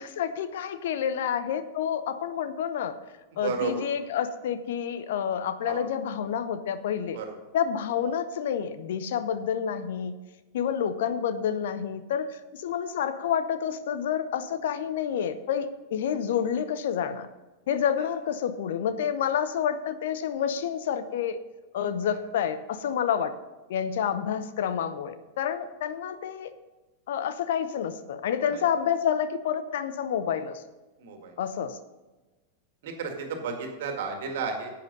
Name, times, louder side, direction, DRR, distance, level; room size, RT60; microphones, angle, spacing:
voice 1, 0.0-2.9 3.4-7.2 7.5-10.1 10.5-17.3 17.7-21.4 21.7-23.3 23.7-26.5 27.1-30.6 31.4-31.8, left 8 dB, 55° left, 12 dB, 0.7 m, -29 dB
voice 2, 3.4-3.8 5.7-5.8 7.1-7.3 31.0-31.3 32.8-34.7, right 5 dB, 55° right, 4 dB, 2.0 m, -32 dB
10.5 x 8.6 x 5.3 m, 1.2 s
figure-of-eight pair, 90°, 0 cm